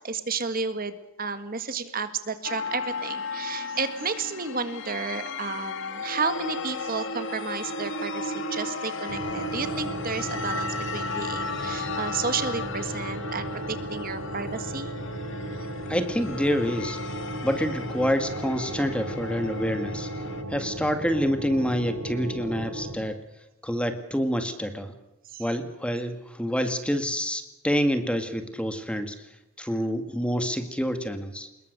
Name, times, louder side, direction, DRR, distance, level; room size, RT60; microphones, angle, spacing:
voice 1, 0.0-14.9 25.3-25.4, right 5 dB, 40° right, 10 dB, 1.7 m, -32 dB
sound 1, 2.4-20.4, left 3 dB, 55° left, 2.3 m, -35 dB
sound 2, 9.1-23.0, right 1 dB, 75° right, 3.8 m, -35 dB
voice 2, 15.9-17.0 17.4-20.1 20.5-23.2 23.6-24.9 25.4-29.3 29.6-31.5, equal, 5° left, 8 dB, 1.9 m, -27 dB
25.5 x 21.5 x 6.7 m, 0.94 s
head